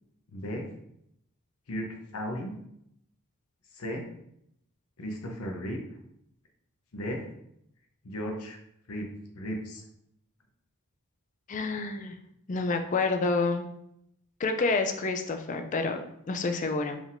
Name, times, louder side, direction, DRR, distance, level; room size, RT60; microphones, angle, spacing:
voice 1, 0.3-0.7 1.7-2.5 3.7-4.0 5.0-5.8 6.9-7.2 8.0-8.6 8.9-9.1 9.3-9.8, equal, 85° left, 2 dB, 0.8 m, -35 dB
voice 2, 11.5-12.2 12.5-13.7 14.4-17.0, left 3 dB, 35° left, 6 dB, 0.4 m, -28 dB
4.9 x 3.5 x 2.6 m, 0.76 s
head